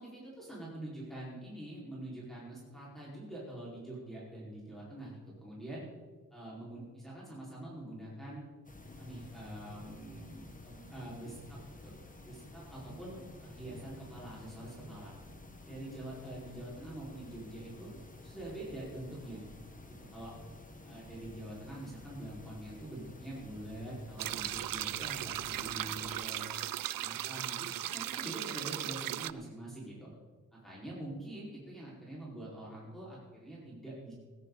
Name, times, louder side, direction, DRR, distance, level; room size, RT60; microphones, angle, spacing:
voice 1, 0.0-5.1 5.4-5.8 6.3-8.4 9.0-11.9 12.2-15.1 15.7-18.0 18.2-19.4 20.1-20.3 20.8-26.4 27.0-30.1 30.5-34.1, right 1 dB, ahead, -7 dB, 5.0 m, -45 dB
sound 1, 8.6-26.1, left 2 dB, 25° left, 1.6 m, -52 dB
sound 2, 24.2-29.3, right 13 dB, 75° right, 0.5 m, -37 dB
17.0 x 13.0 x 4.1 m, 1.3 s
wide cardioid pair, 125°, 34 cm